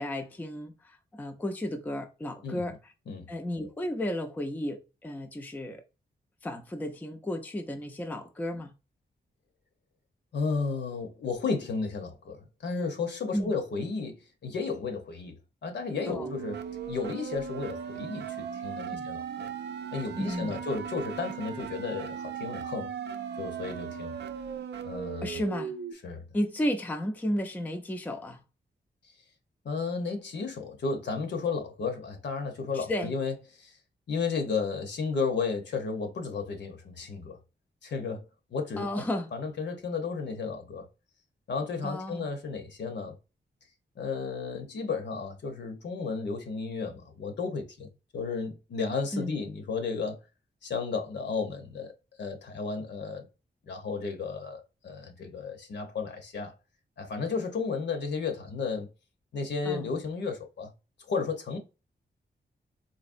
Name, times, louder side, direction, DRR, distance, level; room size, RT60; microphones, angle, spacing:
voice 1, 0.0-2.9 3.3-5.8 6.4-8.7 13.3-13.5 16.1-16.3 18.9-19.1 20.2-20.6 25.2-25.7 26.3-28.4 32.7-33.2 38.8-39.3 41.8-42.3 49.1-49.4 59.6-59.9, left 1 dB, 10° left, 0.4 m, -33 dB
voice 2, 2.4-2.8 3.1-3.3 10.3-15.4 15.6-16.6 16.9-19.5 19.9-22.9 23.4-24.1 24.8-25.4 26.0-26.2 29.6-33.8 34.1-37.4 37.8-38.2 38.5-38.9 39.3-40.9 41.5-43.1 44.0-47.9 48.1-50.2 50.6-51.9 52.2-53.3 53.6-56.5 57.0-58.9 59.3-60.7 61.1-61.6, left 4 dB, 75° left, 0.9 m, -33 dB
sound 1, 15.9-25.9, right 7 dB, 70° right, 0.5 m, -37 dB
4.1 x 2.8 x 2.5 m
wide cardioid pair, 155°, 18 cm